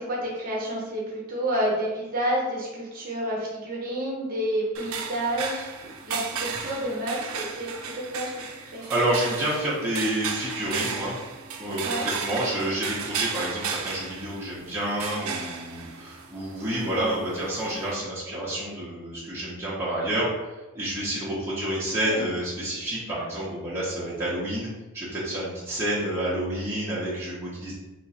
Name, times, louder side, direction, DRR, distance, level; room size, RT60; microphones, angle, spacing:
voice 1, 0.0-8.8 11.8-12.1 22.0-22.3, right 1 dB, 40° right, -4 dB, 0.9 m, -30 dB
sound 1, 4.7-18.0, right 6 dB, 75° right, 0.4 m, -35 dB
voice 2, 8.8-11.2 11.6-20.3 20.7-24.7 24.9-27.7, right 1 dB, 10° right, -9 dB, 0.7 m, -29 dB
3.0 x 2.5 x 4.0 m, 1.1 s
head